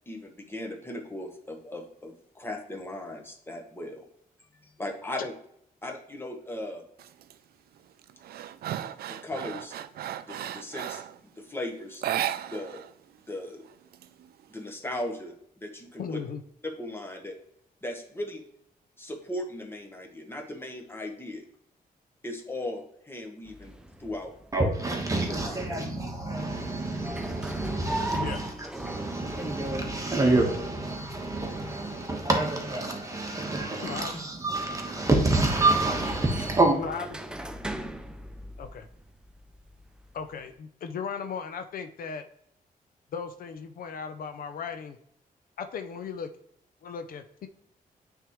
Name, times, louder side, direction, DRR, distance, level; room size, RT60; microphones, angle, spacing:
voice 1, 0.1-4.0 4.6-5.3 5.8-6.9 9.1-9.7 10.2-11.0 11.4-12.0 12.5-12.8 13.3-13.7 14.5-16.2 16.6-17.3 17.8-18.4 19.0-21.4 22.2-24.3 25.3-25.9, left 1 dB, 15° left, 1.1 m, -37 dB
sound 1, 7.0-7.3 7.8-11.2 11.9-12.9 13.2-13.3 13.6-14.6, right 11 dB, 85° right, 0.4 m, -35 dB
voice 2, 16.0-16.4 28.1-28.4 33.8-34.2 36.8-37.1 38.6-38.9 40.1-42.2 43.1-45.0 45.6-46.3 46.8-47.5, left 6 dB, 70° left, 0.6 m, -36 dB
sound 2, 23.4-40.5, right 1 dB, 5° right, 0.5 m, -41 dB
voice 3, 24.5-36.8, right 2 dB, 20° right, 1.2 m, -27 dB
8.9 x 3.6 x 3.1 m
wide cardioid pair, 125°, 15 cm